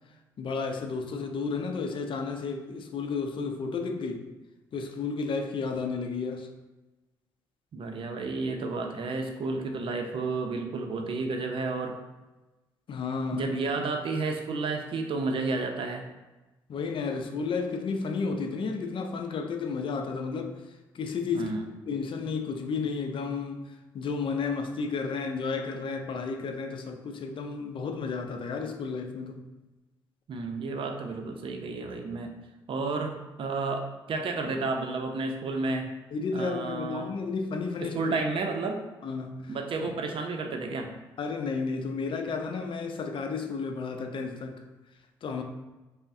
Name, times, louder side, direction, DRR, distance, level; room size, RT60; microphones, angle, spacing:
voice 1, 0.4-4.2 4.7-6.5 12.9-13.8 16.7-20.6 20.9-21.5 21.9-29.4 36.1-38.1 39.0-39.6 41.2-44.6 45.2-45.4, left 4 dB, 50° left, 5 dB, 0.5 m, -32 dB
voice 2, 7.7-12.0 13.3-16.0 21.3-21.6 30.3-32.3 32.7-35.9 36.3-37.1 37.8-38.8 39.5-40.9, right 3 dB, 55° right, 4 dB, 0.6 m, -31 dB
5.2 x 2.1 x 2.6 m, 1.1 s
hypercardioid pair, 50°, 11 cm